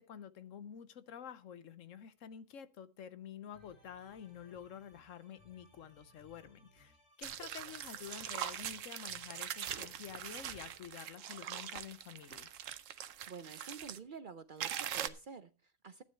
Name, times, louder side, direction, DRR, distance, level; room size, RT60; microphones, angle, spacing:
voice 1, 0.0-6.9 7.2-12.5, left 8 dB, 75° left, 1.1 m, -49 dB
sound 1, 3.5-10.9, equal, 50° left, 3.6 m, -65 dB
sound 2, 7.2-14.0 14.6-15.1, right 10 dB, 70° right, 1.1 m, -42 dB
voice 2, 13.3-16.0, right 5 dB, 50° right, 0.6 m, -49 dB
12.0 x 9.4 x 4.3 m
omnidirectional pair, 1.4 m